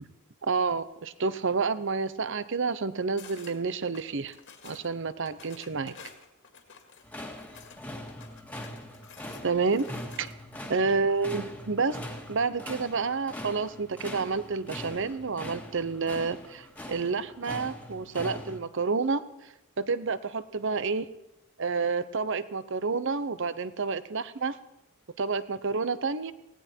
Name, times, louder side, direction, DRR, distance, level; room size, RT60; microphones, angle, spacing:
voice 1, 0.5-4.3 4.6-6.0 9.4-9.9 10.2-10.3 10.7-12.0 12.3-19.2 19.8-21.1 21.6-24.6 25.2-26.3, right 4 dB, 60° right, 15 dB, 0.8 m, -29 dB
sound 1, 3.2-3.6 3.9-4.9 5.3-7.8 8.1-10.6, left 6 dB, 60° left, 2.1 m, -51 dB
sound 2, 7.0-18.6, left 1 dB, 5° left, 1.7 m, -42 dB
17.5 x 17.5 x 4.5 m, 0.90 s
head